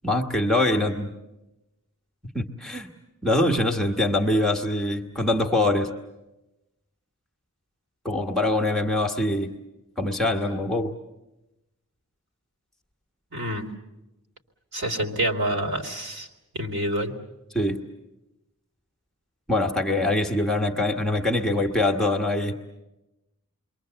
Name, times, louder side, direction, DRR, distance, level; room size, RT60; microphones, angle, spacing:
voice 1, 0.0-1.1 2.2-2.9 3.2-5.9 8.0-9.5 10.0-10.9 17.5-17.8 19.5-22.5, left 1 dB, ahead, 2 dB, 1.4 m, -24 dB
voice 2, 13.3-13.6 14.7-16.3 16.5-17.1, right 1 dB, 55° right, 2 dB, 3.2 m, -27 dB
29.0 x 23.0 x 8.0 m, 0.97 s
head